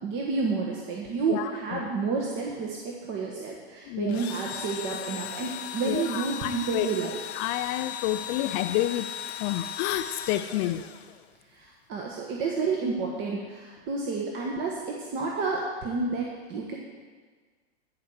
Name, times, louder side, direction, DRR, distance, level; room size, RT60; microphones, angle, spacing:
voice 1, 0.0-7.2 11.5-16.7, right 4 dB, 35° right, -2 dB, 1.4 m, -30 dB
voice 2, 1.3-1.8 3.9-4.2 5.8-9.1 9.4-10.8, left 14 dB, 30° left, 9 dB, 0.4 m, -30 dB
Engine / Drill, 4.1-11.4, left 9 dB, 70° left, 0.9 m, -37 dB
14.5 x 4.9 x 6.3 m, 1.5 s
hypercardioid pair, 115°, 33 cm